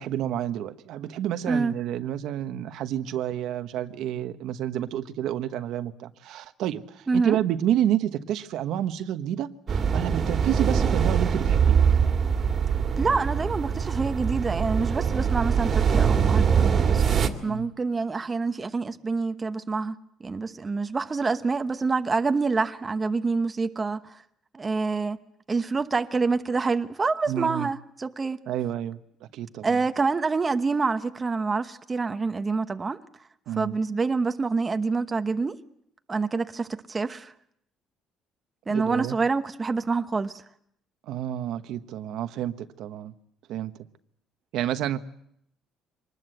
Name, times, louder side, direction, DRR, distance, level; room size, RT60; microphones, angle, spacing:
voice 1, 0.0-11.8 17.4-17.7 27.3-27.7 28.5-29.0 29.3-29.8 33.5-33.7 38.7-39.2 41.1-43.1 43.5-43.7 44.5-45.0, right 11 dB, 75° right, 1.2 m, -29 dB
voice 2, 7.1-7.4 13.0-17.0 17.4-19.9 20.2-24.2 24.5-25.2 25.5-28.4 29.6-33.0 33.5-35.6 36.1-37.3 38.7-40.4, right 4 dB, 25° right, 1.0 m, -27 dB
sound 1, 9.7-17.3, right 7 dB, 40° right, 2.1 m, -23 dB
24.5 x 20.0 x 7.9 m
cardioid pair, 125°, 0 cm